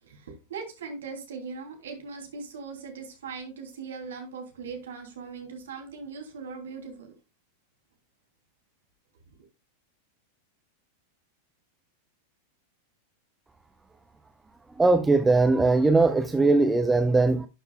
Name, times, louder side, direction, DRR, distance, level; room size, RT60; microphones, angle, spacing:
voice 1, 0.0-7.1, right 5 dB, 60° right, 3.0 m, -40 dB
voice 2, 14.8-17.5, right 3 dB, 10° right, 0.6 m, -20 dB
12.0 x 6.8 x 2.3 m
figure-of-eight pair, 90°, 0 cm